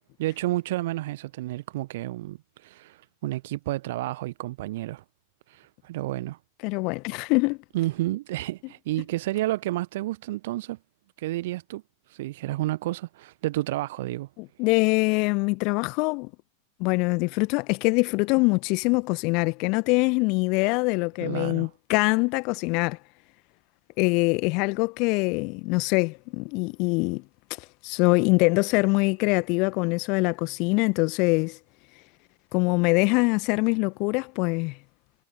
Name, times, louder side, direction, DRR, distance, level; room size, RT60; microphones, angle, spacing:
voice 1, 0.2-5.0 5.5-6.4 7.7-10.8 11.2-11.8 12.1-14.3 21.2-21.7, right 17 dB, 55° right, 1.0 m, -30 dB
voice 2, 6.6-7.6 14.4-16.3 16.8-23.0 24.0-27.2 27.6-31.6 32.5-34.8, left 29 dB, 45° left, 1.3 m, -24 dB
figure-of-eight pair, 90°, 0 cm